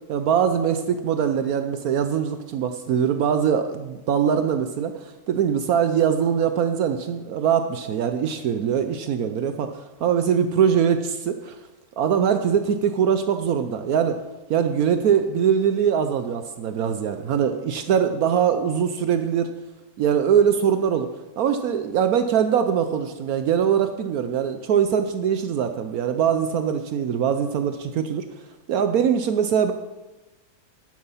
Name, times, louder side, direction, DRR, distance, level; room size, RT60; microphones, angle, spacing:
voice 1, 0.1-11.6 12.0-14.2 14.5-19.5 20.0-21.1 21.4-28.2 28.7-29.7, right 8 dB, 75° right, 8 dB, 1.2 m, -22 dB
10.5 x 9.7 x 5.7 m, 1.1 s
omnidirectional pair, 1.6 m